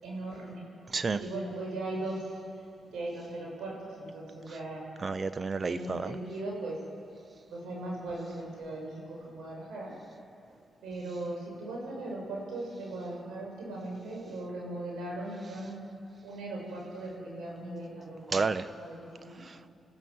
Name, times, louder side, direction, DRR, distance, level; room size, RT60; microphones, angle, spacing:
voice 1, 0.0-0.6 0.9-2.2 2.9-4.9 5.6-6.8 7.5-9.9 10.8-15.8 16.2-18.4 18.8-19.4, right 2 dB, 80° right, -2 dB, 6.6 m, -38 dB
voice 2, 5.0-6.1 18.3-18.7 19.5-19.7, right 4 dB, 45° right, 12 dB, 0.9 m, -30 dB
29.0 x 14.5 x 7.3 m, 2.6 s
supercardioid pair, 55°, 0 cm